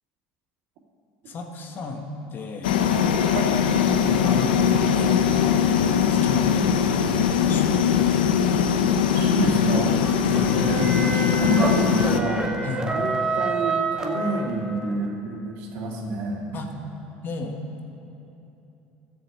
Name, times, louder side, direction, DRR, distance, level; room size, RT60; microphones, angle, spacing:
voice 1, 1.2-2.7 3.7-8.4 10.3-10.5 12.6-12.8 16.5-16.7 17.2-17.6, left 4 dB, 45° left, 4 dB, 1.6 m, -35 dB
sound 1, 2.6-12.2, left 7 dB, 90° left, 0.7 m, -21 dB
voice 2, 9.1-9.9 10.5-12.5 12.8-16.4, right 2 dB, 70° right, -2 dB, 2.6 m, -28 dB
sound 2, 10.0-14.8, right 3 dB, 15° right, 1.5 m, -28 dB
13.0 x 7.0 x 8.1 m, 2.9 s
hypercardioid pair, 80°, 5 cm